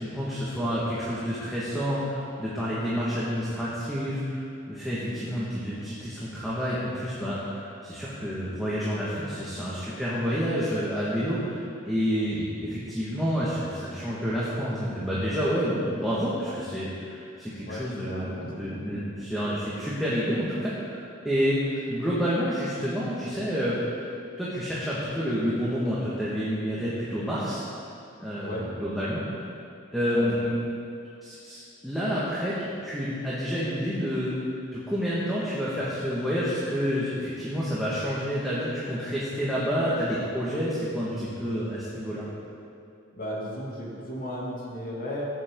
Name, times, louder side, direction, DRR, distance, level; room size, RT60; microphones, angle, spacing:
voice 1, 0.0-23.8 24.4-27.6 28.2-29.5 29.9-30.5 31.2-34.4 34.7-42.2, equal, ahead, -10 dB, 1.8 m, -29 dB
voice 2, 17.7-18.5 28.4-28.7 30.1-30.3 43.1-45.2, equal, 45° left, -4 dB, 2.7 m, -35 dB
16.0 x 10.0 x 3.9 m, 2.6 s
head